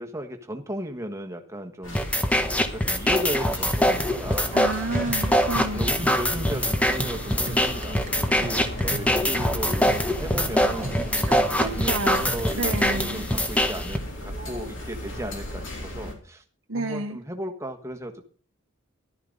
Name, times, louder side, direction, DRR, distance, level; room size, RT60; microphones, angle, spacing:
voice 1, 0.0-4.9 5.8-11.3 11.6-16.4 16.7-18.2, equal, 15° right, 5 dB, 1.4 m, -35 dB
sound 1, 1.8-16.1, left 1 dB, 65° left, 3.5 m, -35 dB
sound 2, 1.9-14.0, equal, 5° left, 1.0 m, -24 dB
voice 2, 4.5-5.9 11.3-12.3 12.6-13.3 16.7-17.2, right 2 dB, 75° right, 1 dB, 1.2 m, -30 dB
sound 3, 5.1-12.6, right 2 dB, 35° right, 1.1 m, -37 dB
14.5 x 12.0 x 4.0 m, 0.40 s
head